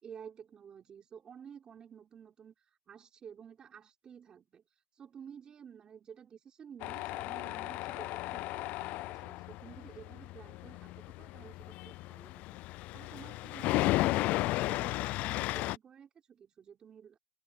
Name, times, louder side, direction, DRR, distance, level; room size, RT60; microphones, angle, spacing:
voice 1, 0.0-2.5 2.9-4.6 5.0-12.6 12.9-17.2, right 7 dB, 20° right, 5.0 m, -52 dB
Tools, 6.8-15.8, left 19 dB, 35° left, 0.3 m, -34 dB
supercardioid pair, 140°, 4 cm